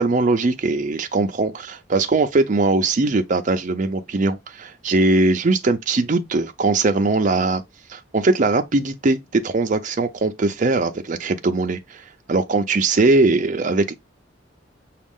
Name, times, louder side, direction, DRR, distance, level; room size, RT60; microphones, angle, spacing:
voice 1, 0.0-1.5 1.9-7.6 7.9-13.9, right 3 dB, 40° right, 0.5 m, -20 dB
6.0 x 2.4 x 3.6 m
head